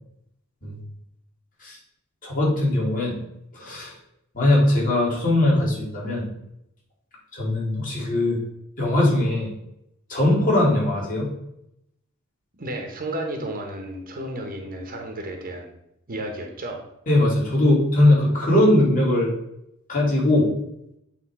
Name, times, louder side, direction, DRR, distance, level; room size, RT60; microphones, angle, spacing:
voice 1, 2.2-3.2 3.5-3.9 4.3-6.2 7.3-8.4 8.8-9.5 10.1-11.3 17.1-19.3 19.9-20.5, left 1 dB, 40° left, -4 dB, 2.5 m, -20 dB
voice 2, 12.5-15.7 16.1-16.8, right 1 dB, 40° right, 2 dB, 1.2 m, -32 dB
8.2 x 3.4 x 4.8 m, 0.80 s
head